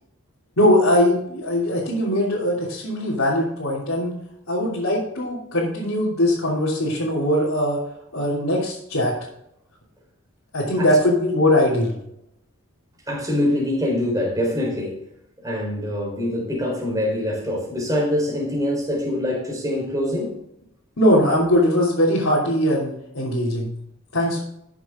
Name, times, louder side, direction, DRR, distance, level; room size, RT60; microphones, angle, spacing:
voice 1, 0.6-4.1 4.5-7.8 8.1-9.2 10.5-12.0 21.0-23.7 24.1-24.4, left 1 dB, 75° left, -7 dB, 3.1 m, -20 dB
voice 2, 13.1-15.0 15.4-20.4, left 1 dB, 15° right, -1 dB, 4.2 m, -24 dB
13.0 x 7.3 x 3.8 m, 0.81 s
head